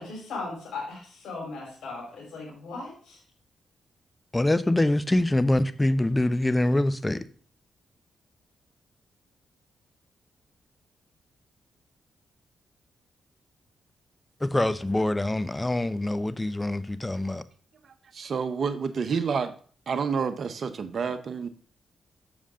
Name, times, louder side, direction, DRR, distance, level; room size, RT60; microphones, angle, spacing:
voice 1, 0.0-3.2, left 3 dB, 70° left, -4 dB, 4.2 m, -37 dB
voice 2, 4.3-7.2 14.4-17.4, left 1 dB, 20° left, 14 dB, 0.9 m, -24 dB
voice 3, 17.8-19.5 19.9-21.5, right 5 dB, 60° right, 10 dB, 1.0 m, -29 dB
7.3 x 7.2 x 3.7 m, 0.43 s
supercardioid pair, 45°, 0 cm